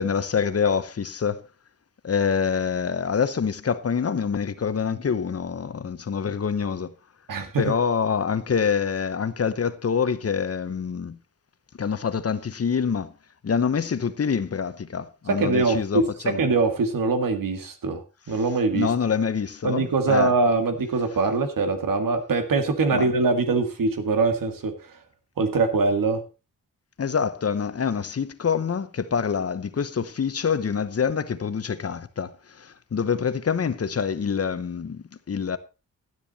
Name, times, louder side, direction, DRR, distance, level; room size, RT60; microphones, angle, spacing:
voice 1, 0.0-1.4 2.0-6.9 7.6-11.2 11.8-13.1 13.4-16.4 18.7-20.3 22.9-23.1 27.0-35.6, left 6 dB, 45° left, 0.9 m, -26 dB
voice 2, 7.3-7.6 15.4-16.0 16.4-18.9 19.6-25.0 25.4-26.2, right 4 dB, 85° right, 2.0 m, -23 dB
12.5 x 10.0 x 4.1 m
wide cardioid pair, 115°, 33 cm